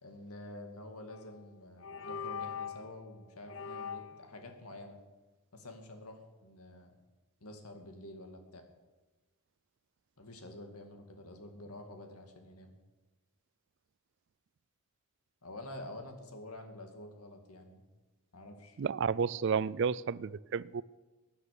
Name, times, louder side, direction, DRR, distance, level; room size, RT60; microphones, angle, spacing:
voice 1, 0.0-5.0 5.5-6.9 7.4-8.6 10.2-12.7 15.4-17.8 18.3-18.8, left 1 dB, 85° left, 5 dB, 2.2 m, -48 dB
sound 1, 1.1-1.4 1.8-2.9 3.5-4.3, left 7 dB, 60° left, 0.6 m, -41 dB
voice 2, 18.8-20.8, right 6 dB, 55° right, 21 dB, 0.4 m, -31 dB
16.5 x 9.8 x 6.7 m, 1.2 s
head